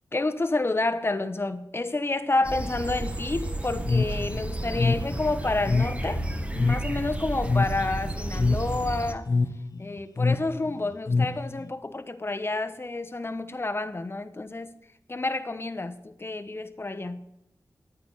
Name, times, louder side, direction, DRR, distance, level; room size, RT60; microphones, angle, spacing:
voice 1, 0.1-6.2 6.5-9.3 9.8-14.8 15.1-17.2, left 2 dB, 30° left, 1.0 m, -29 dB
sound 1, 2.4-9.1, right 1 dB, 15° right, 1.3 m, -32 dB
sound 2, 3.8-11.7, left 3 dB, 50° left, 0.8 m, -27 dB
10.0 x 9.4 x 9.9 m
wide cardioid pair, 65°, 8 cm